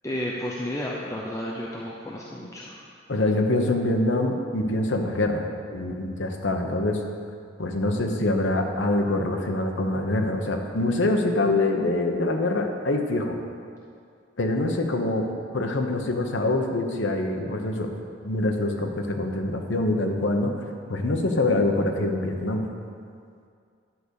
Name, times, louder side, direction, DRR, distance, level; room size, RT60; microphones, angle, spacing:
voice 1, 0.0-2.8, left 1 dB, 15° left, -4 dB, 0.7 m, -32 dB
voice 2, 3.1-7.0 7.6-13.4 14.4-17.9 18.2-20.5 20.9-22.6, left 2 dB, 80° left, 3 dB, 1.1 m, -25 dB
11.0 x 5.2 x 6.5 m, 2.3 s
head